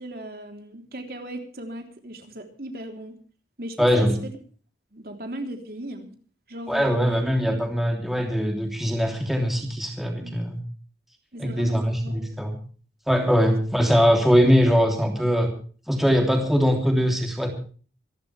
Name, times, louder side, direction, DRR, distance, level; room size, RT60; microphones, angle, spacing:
voice 1, 0.0-3.2 3.6-4.3 4.9-6.1 6.5-7.2 7.5-7.6 10.2-10.4 11.3-12.3 13.5-13.6, right 1 dB, 55° right, 4 dB, 3.5 m, -37 dB
voice 2, 3.8-4.2 6.7-10.6 11.4-12.5 13.1-15.5 15.9-17.5, equal, ahead, 2 dB, 3.2 m, -21 dB
26.5 x 12.0 x 3.4 m, 0.41 s
head